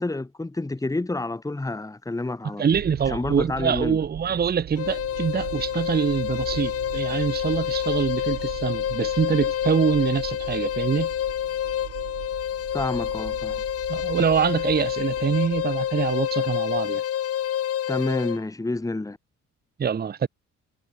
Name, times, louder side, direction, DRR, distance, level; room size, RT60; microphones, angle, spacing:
voice 1, 0.0-2.6 3.1-4.0 7.1-7.2 12.7-13.6 17.9-19.2, left 2 dB, 10° left, 1.6 m, -29 dB
voice 2, 2.6-11.1 13.9-17.0 19.8-20.3, right 7 dB, 30° right, 0.9 m, -24 dB
sound 1, 2.7-16.9, right 14 dB, 65° right, 0.8 m, -40 dB
sound 2, 4.8-18.4, left 11 dB, 50° left, 0.8 m, -28 dB
cardioid pair, 90°, 30 cm